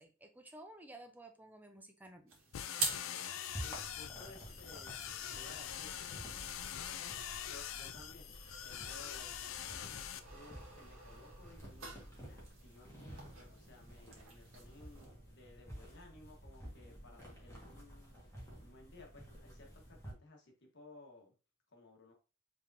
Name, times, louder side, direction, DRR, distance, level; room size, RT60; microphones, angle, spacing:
voice 1, 0.0-2.4, right 1 dB, 10° right, 5 dB, 0.6 m, -54 dB
sound 1, 2.3-15.1, right 3 dB, 75° right, 1.6 m, -48 dB
sound 2, 2.5-10.2, left 10 dB, 75° left, 0.4 m, -44 dB
voice 2, 2.9-3.2 3.5-4.9 5.3-6.4 7.5-8.4 8.6-18.1 18.6-21.3 21.7-22.1, left 2 dB, 60° left, 1 dB, 1.4 m, -58 dB
sound 3, 3.5-20.1, equal, 15° left, 1.6 m, -52 dB
4.8 x 3.6 x 2.7 m, 0.33 s
head